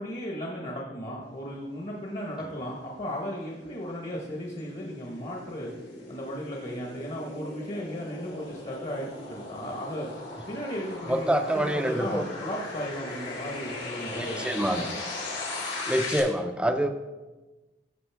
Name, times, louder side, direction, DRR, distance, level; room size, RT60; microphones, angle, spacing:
voice 1, 0.0-5.7 6.1-10.1 10.5-14.9, equal, 40° left, -1 dB, 1.1 m, -35 dB
sound 1, 3.0-16.2, left 2 dB, 80° left, 2.6 m, -38 dB
voice 2, 11.1-12.2 14.1-14.9 15.9-16.9, right 1 dB, 5° right, 7 dB, 0.5 m, -26 dB
14.0 x 5.3 x 3.4 m, 1.2 s
head